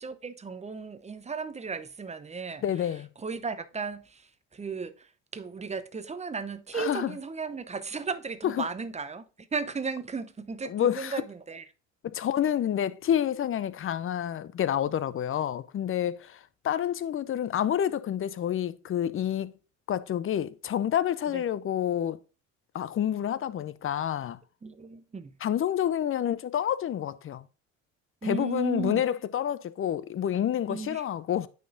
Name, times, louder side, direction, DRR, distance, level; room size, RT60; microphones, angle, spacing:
voice 1, 0.0-2.9 3.2-9.2 9.5-11.7 21.3-21.4 24.6-25.3 28.2-29.0 30.7-31.0, right 5 dB, 15° right, 0.8 m, -35 dB
voice 2, 2.6-3.1 6.7-7.1 8.4-8.5 10.6-11.1 12.0-16.4 16.6-19.5 19.9-22.2 22.7-24.4 25.4-27.4 28.2-31.5, left 10 dB, 35° left, 0.6 m, -28 dB
9.2 x 4.3 x 2.6 m
hypercardioid pair, 65°, 39 cm